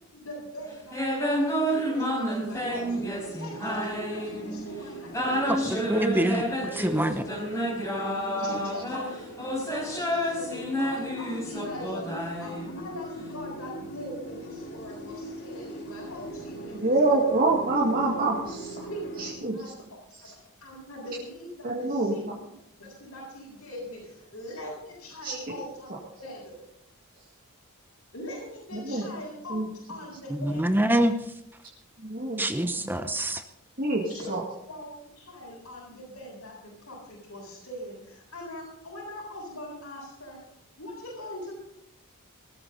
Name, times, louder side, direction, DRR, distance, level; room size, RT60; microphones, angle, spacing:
voice 1, 0.1-5.6 6.3-6.4 7.0-7.1 7.9-8.0 8.4-9.1 9.4-17.2 18.9-19.7 20.2-20.3 20.6-22.2 22.8-25.9 26.2-26.5 28.1-31.0 34.1-34.4 34.7-40.4 40.8-41.5, left 1 dB, 80° left, -7 dB, 7.1 m, -42 dB
sound 1, 0.9-4.7 5.1-13.0, equal, 15° left, 4.8 m, -30 dB
sound 2, 2.5-19.3, right 1 dB, 50° left, 2.4 m, -41 dB
voice 2, 5.7-6.4 6.8-7.1 30.4-31.1 32.4-33.4, right 1 dB, 10° right, 8 dB, 0.8 m, -25 dB
voice 3, 16.8-18.9 19.2-19.7 20.2-20.3 21.6-22.2 25.2-25.5 28.8-29.1 29.5-29.7 32.0-33.0 33.8-34.4, right 2 dB, 40° right, -3 dB, 2.0 m, -27 dB
19.0 x 13.5 x 4.1 m, 0.80 s
head